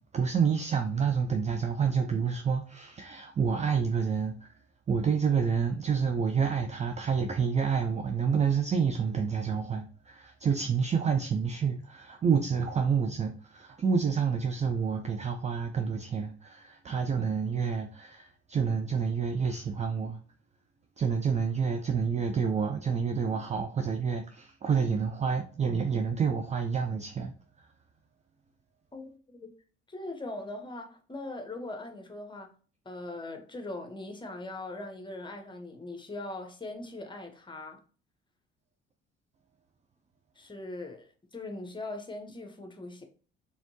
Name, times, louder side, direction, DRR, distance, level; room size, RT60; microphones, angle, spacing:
voice 1, 0.1-4.5 4.9-20.2 21.0-27.3, right 6 dB, 20° right, 0.5 m, -28 dB
voice 2, 28.9-29.5 29.9-32.5 32.8-37.8 40.4-43.0, left 2 dB, 15° left, 1.1 m, -40 dB
4.2 x 3.4 x 2.8 m
figure-of-eight pair, 50°, 32 cm